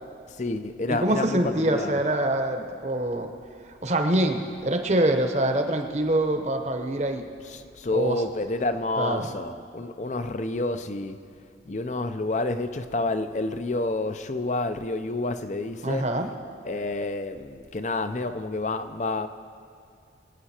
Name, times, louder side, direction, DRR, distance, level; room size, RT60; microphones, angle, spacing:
voice 1, 0.4-2.0 7.4-11.2 11.7-16.2 16.6-19.3, left 2 dB, 40° left, 0.6 m, -29 dB
voice 2, 0.9-3.3 3.8-7.3 7.9-8.2 9.0-9.3 15.8-16.3, right 1 dB, 40° right, 1.0 m, -25 dB
23.5 x 8.8 x 4.4 m
head